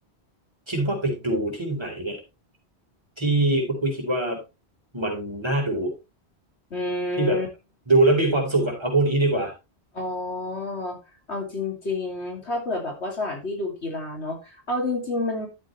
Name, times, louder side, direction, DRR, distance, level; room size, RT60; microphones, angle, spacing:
voice 1, 0.7-2.2 3.2-4.4 4.9-5.9 7.2-7.4 7.9-9.5, right 2 dB, 25° right, 0 dB, 4.3 m, -23 dB
voice 2, 6.7-7.5 9.9-15.5, left 2 dB, 75° left, 2 dB, 3.2 m, -29 dB
12.0 x 7.7 x 3.3 m, 0.27 s
omnidirectional pair, 1.2 m